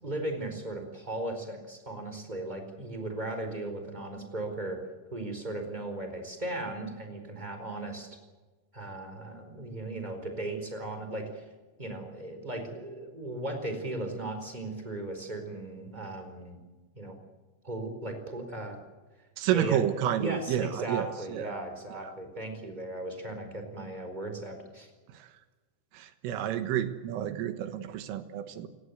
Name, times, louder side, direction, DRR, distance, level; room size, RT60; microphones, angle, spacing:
voice 1, 0.0-4.8 5.1-8.1 8.7-11.5 11.8-16.6 16.9-17.2 17.6-18.8 19.5-19.8 20.2-24.9, right 2 dB, 10° right, 5 dB, 3.7 m, -37 dB
voice 2, 19.4-21.5 22.0-22.1 25.2-25.3 25.9-28.7, right 10 dB, 80° right, 10 dB, 3.9 m, -30 dB
29.5 x 17.5 x 8.1 m, 1.3 s
omnidirectional pair, 6.0 m